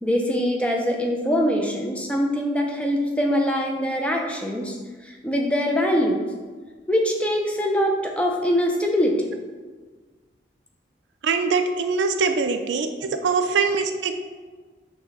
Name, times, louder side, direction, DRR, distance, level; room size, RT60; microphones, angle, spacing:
voice 1, 0.0-4.7 5.0-6.2 6.9-9.3, equal, 5° left, 1 dB, 0.4 m, -23 dB
voice 2, 11.2-14.1, right 4 dB, 75° right, 7 dB, 0.4 m, -23 dB
6.0 x 2.1 x 3.9 m, 1.4 s
head